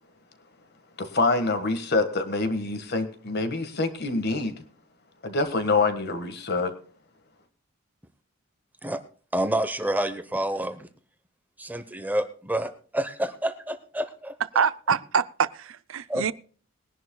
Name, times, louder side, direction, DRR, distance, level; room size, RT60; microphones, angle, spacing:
voice 1, 1.0-4.6 5.2-6.7, left 3 dB, 50° left, 1.6 m, -26 dB
voice 2, 9.3-10.9 11.6-14.6 16.1-16.3, right 1 dB, 10° right, 0.9 m, -29 dB
voice 3, 14.5-16.3, right 6 dB, 70° right, 0.5 m, -25 dB
21.5 x 11.0 x 2.3 m
head